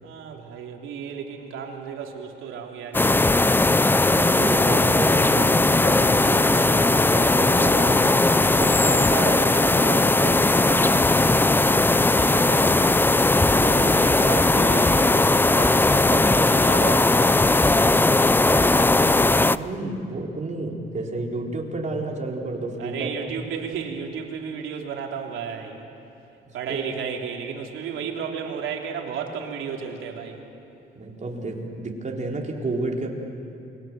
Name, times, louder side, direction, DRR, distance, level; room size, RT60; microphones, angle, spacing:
voice 1, 0.0-3.6 8.4-13.0 13.5-17.5 22.8-25.8 26.5-30.4, right 7 dB, 85° right, 1 dB, 3.2 m, -33 dB
sound 1, 2.9-19.6, left 2 dB, 10° left, 0.5 m, -18 dB
voice 2, 4.1-8.2 19.0-23.1 26.7-26.8 30.9-33.1, right 2 dB, 35° right, 0 dB, 4.2 m, -31 dB
28.5 x 22.5 x 7.6 m, 2.7 s
cardioid pair, 90°, 20 cm